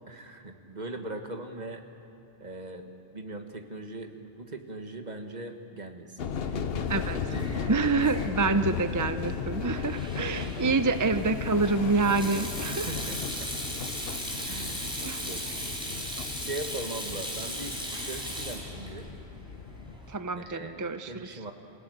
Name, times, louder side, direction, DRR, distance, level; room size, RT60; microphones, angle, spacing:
voice 1, 0.0-1.8 2.4-6.2 6.5-6.9 10.5-10.8 12.6-13.5 14.5-15.7 16.4-19.1 20.4-21.5, right 2 dB, 40° right, 5 dB, 1.7 m, -40 dB
sound 1, 6.2-20.0, left 6 dB, 65° left, 1.0 m, -36 dB
Sink (filling or washing), 6.5-20.1, equal, 5° right, 4.5 m, -38 dB
voice 2, 6.9-7.3 7.7-12.9 15.0-15.3 20.1-21.4, right 4 dB, 25° right, 10 dB, 0.4 m, -27 dB
28.0 x 17.0 x 9.3 m, 2.9 s
omnidirectional pair, 1.1 m